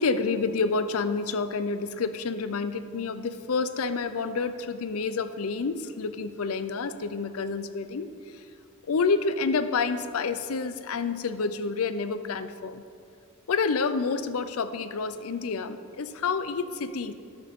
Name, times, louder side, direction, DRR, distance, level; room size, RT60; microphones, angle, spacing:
voice 1, 0.0-8.1 8.9-12.8 13.5-17.1, left 4 dB, 65° left, 11 dB, 0.5 m, -28 dB
11.5 x 8.1 x 3.6 m, 2.4 s
head